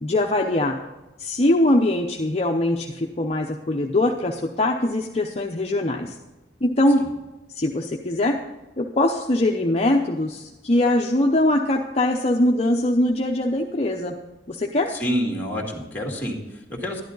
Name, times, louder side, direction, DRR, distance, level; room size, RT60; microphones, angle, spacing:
voice 1, 0.0-0.8 1.2-6.1 6.6-7.0 7.6-8.3 8.8-14.1 14.5-14.9, left 1 dB, 35° left, 1 dB, 0.7 m, -22 dB
voice 2, 14.9-17.0, equal, 10° left, 0 dB, 2.1 m, -28 dB
12.5 x 11.0 x 3.9 m, 1.0 s
head